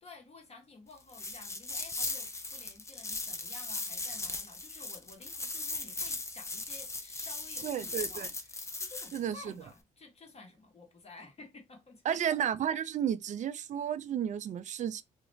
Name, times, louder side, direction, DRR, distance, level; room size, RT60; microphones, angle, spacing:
voice 1, 0.0-12.2, left 3 dB, 35° left, 1.1 m, -53 dB
sound 1, 1.1-9.2, left 3 dB, 15° left, 0.5 m, -38 dB
voice 2, 7.6-8.3 9.1-9.4 12.1-15.0, right 9 dB, 45° right, 0.4 m, -32 dB
2.4 x 2.0 x 3.1 m
supercardioid pair, 60°, 17 cm